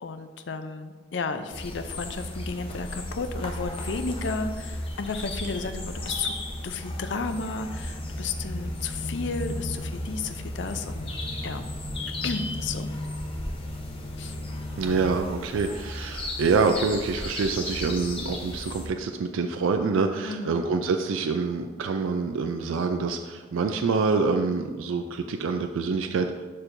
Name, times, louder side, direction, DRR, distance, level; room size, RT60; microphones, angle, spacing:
voice 1, 0.0-6.4 6.6-11.1 11.4-11.6 12.2-12.9 14.2-14.4 20.2-20.6, left 4 dB, 65° left, 8 dB, 0.5 m, -33 dB
sound 1, 1.5-18.9, left 1 dB, 30° left, 0.7 m, -34 dB
voice 2, 14.8-26.3, right 4 dB, 85° right, 6 dB, 0.4 m, -26 dB
11.5 x 4.4 x 2.6 m, 1.4 s
head